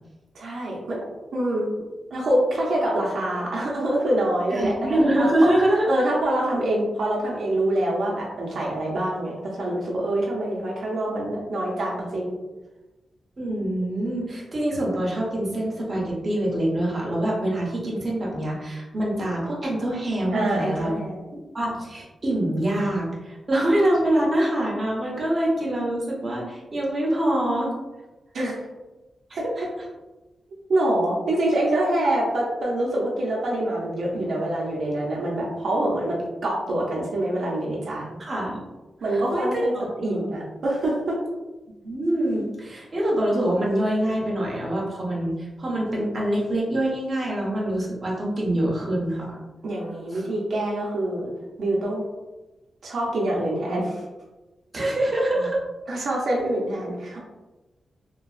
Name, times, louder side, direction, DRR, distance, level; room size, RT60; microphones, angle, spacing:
voice 1, 0.3-1.0 1.3-1.7 2.1-5.2 5.9-12.4 20.3-21.2 28.3-28.6 30.7-38.1 39.0-39.7 40.0-41.2 49.6-51.3 51.6-52.0 52.8-54.0 55.9-57.2, right 1 dB, 70° right, -4 dB, 0.6 m, -25 dB
voice 2, 4.5-5.9 13.4-21.0 21.5-27.7 29.3-29.6 38.2-38.6 39.1-39.8 40.1-40.3 41.8-49.4 50.1-50.3 54.7-55.6, right 1 dB, 25° right, -4 dB, 0.7 m, -25 dB
3.2 x 2.2 x 2.3 m, 1.1 s
wide cardioid pair, 170°, 0 cm